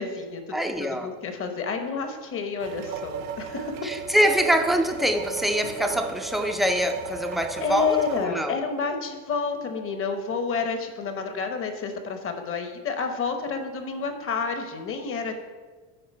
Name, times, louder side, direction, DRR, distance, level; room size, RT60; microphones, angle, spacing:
voice 1, 0.0-0.4 0.8-3.9 7.6-15.3, left 5 dB, 35° left, 6 dB, 1.0 m, -29 dB
voice 2, 0.5-1.1 3.8-8.6, equal, ahead, 5 dB, 0.4 m, -24 dB
sound 1, 2.6-8.3, right 7 dB, 85° right, 0.8 m, -35 dB
7.8 x 4.7 x 4.3 m, 1.3 s
supercardioid pair, 110°, 39 cm